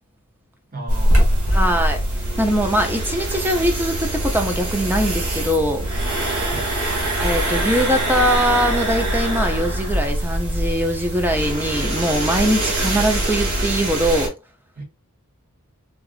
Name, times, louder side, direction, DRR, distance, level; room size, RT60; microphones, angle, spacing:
voice 1, 0.7-1.7 6.5-6.7 14.8-14.9, right 2 dB, 40° right, 1.1 m, -36 dB
sound 1, 0.9-14.3, right 1 dB, 90° right, 1.3 m, -23 dB
Musical instrument, 1.5-7.1, right 1 dB, 25° left, 0.8 m, -37 dB
voice 2, 1.5-2.0 2.4-5.9 7.2-14.3, equal, 10° right, 0.5 m, -21 dB
3.9 x 2.4 x 2.4 m
head